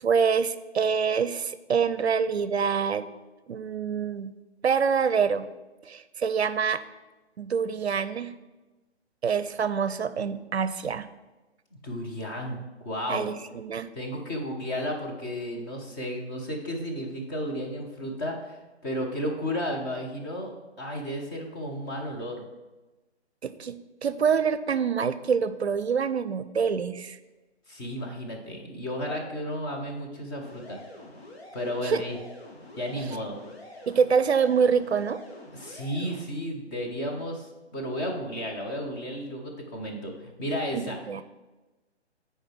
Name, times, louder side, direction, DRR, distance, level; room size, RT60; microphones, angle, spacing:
voice 1, 0.0-3.0 3.5-4.3 4.6-5.4 5.8-6.8 7.4-8.3 9.2-11.1 13.1-13.9 23.4-27.2 31.8-32.0 33.0-33.1 33.9-35.2 40.7-41.2, right 6 dB, 70° right, 13 dB, 0.5 m, -26 dB
voice 2, 11.7-12.6 12.8-13.3 13.9-22.5 27.7-30.8 31.5-32.2 32.8-33.4 35.5-41.0, equal, 20° left, 0 dB, 0.9 m, -33 dB
sound 1, 30.4-36.2, left 1 dB, 60° left, 1.8 m, -46 dB
6.5 x 4.6 x 6.1 m, 1.1 s
figure-of-eight pair, 140°, 34 cm